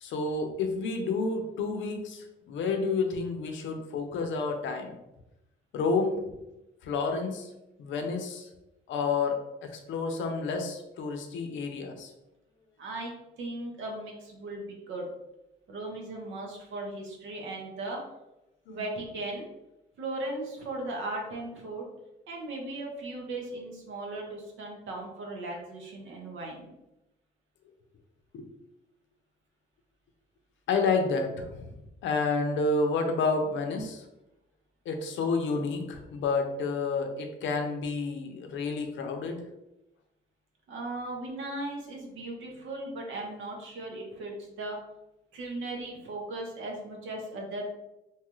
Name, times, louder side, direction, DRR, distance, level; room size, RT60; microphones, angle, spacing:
voice 1, 0.0-5.0 5.7-6.2 6.8-7.5 7.8-8.5 8.9-12.1 18.7-18.8 28.3-28.5 30.7-31.7 32.0-34.1 34.9-39.4, left 4 dB, 75° left, 4 dB, 0.5 m, -30 dB
voice 2, 12.8-15.1 15.7-18.0 18.7-19.5 20.0-21.9 22.3-26.7 40.7-44.8 45.3-47.6, right 2 dB, 80° right, 0 dB, 0.8 m, -37 dB
2.9 x 2.3 x 3.0 m, 0.92 s
cardioid pair, 90°, 20 cm